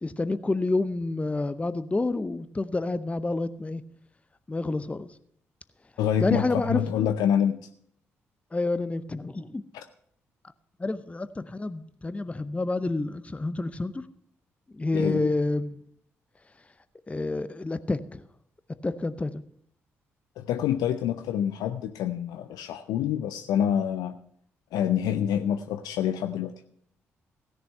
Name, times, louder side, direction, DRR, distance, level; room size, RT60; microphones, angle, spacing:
voice 1, 0.0-3.8 4.5-5.1 6.2-6.8 8.5-9.6 10.8-14.0 14.7-15.8 17.1-18.2 18.8-19.4, left 2 dB, 20° left, 0.6 m, -28 dB
voice 2, 6.0-7.6 9.7-9.8 14.9-15.4 20.4-24.1 24.7-26.5, left 9 dB, 70° left, 0.5 m, -27 dB
16.0 x 6.9 x 5.5 m
hypercardioid pair, 40°, 7 cm